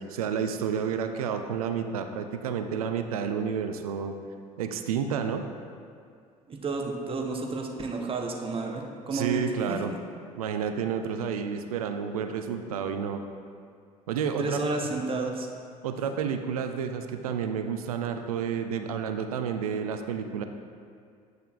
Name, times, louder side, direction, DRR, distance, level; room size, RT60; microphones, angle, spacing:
voice 1, 0.0-4.2 4.6-5.4 9.1-9.9 10.4-13.2 14.1-14.6 15.8-20.4, right 7 dB, 75° right, 7 dB, 0.4 m, -30 dB
voice 2, 6.5-9.4 9.7-10.0 14.4-15.5, right 3 dB, 30° right, 1 dB, 0.9 m, -31 dB
9.4 x 6.5 x 2.4 m, 2.3 s
figure-of-eight pair, 60°, 19 cm